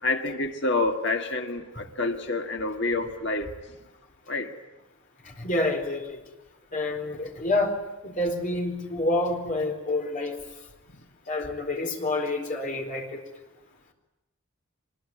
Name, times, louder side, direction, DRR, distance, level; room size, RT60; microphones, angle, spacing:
voice 1, 0.0-3.5 4.3-4.5, left 2 dB, 55° left, 5 dB, 1.8 m, -28 dB
voice 2, 5.2-6.2 6.7-10.4 11.3-13.2, left 2 dB, 35° left, 3 dB, 4.1 m, -28 dB
24.5 x 21.0 x 9.6 m, 0.99 s
head